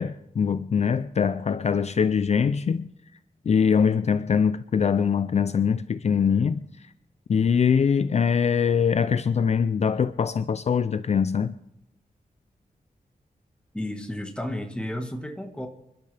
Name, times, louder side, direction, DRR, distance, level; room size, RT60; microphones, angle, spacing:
voice 1, 0.0-2.9 3.5-6.6 7.3-11.5, left 6 dB, 50° left, 0.4 m, -23 dB
voice 2, 13.7-15.7, left 1 dB, 5° left, 1.5 m, -32 dB
26.5 x 12.0 x 3.4 m
wide cardioid pair, 160°, 14 cm